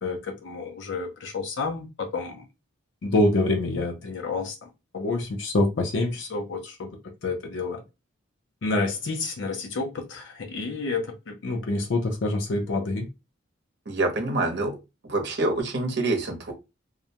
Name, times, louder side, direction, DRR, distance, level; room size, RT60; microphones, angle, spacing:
voice 1, 0.0-2.4 3.0-4.7 4.9-6.9 7.2-7.8 8.6-13.1, left 2 dB, 60° left, 0.5 m, -27 dB
voice 2, 13.9-14.8 15.0-16.5, right 2 dB, 55° right, 0.7 m, -26 dB
2.4 x 2.1 x 2.8 m
head